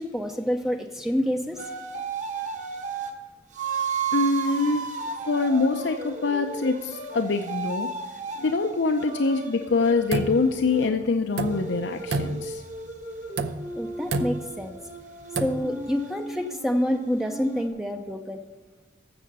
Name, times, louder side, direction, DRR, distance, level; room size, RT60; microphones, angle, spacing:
voice 1, 0.0-1.7 13.7-14.8 15.4-18.4, equal, ahead, 4 dB, 0.5 m, -28 dB
sound 1, 1.6-3.1 3.5-10.9 11.3-17.7, right 4 dB, 40° right, 1.4 m, -34 dB
voice 2, 4.1-4.9 5.3-12.6, left 3 dB, 75° left, 5 dB, 0.6 m, -25 dB
sound 2, 9.7-10.9 11.2-11.8 12.1-12.8 13.3-13.8 14.1-14.6 15.2-15.8, right 3 dB, 65° right, 0.7 m, -30 dB
13.0 x 7.6 x 5.4 m, 1.3 s
head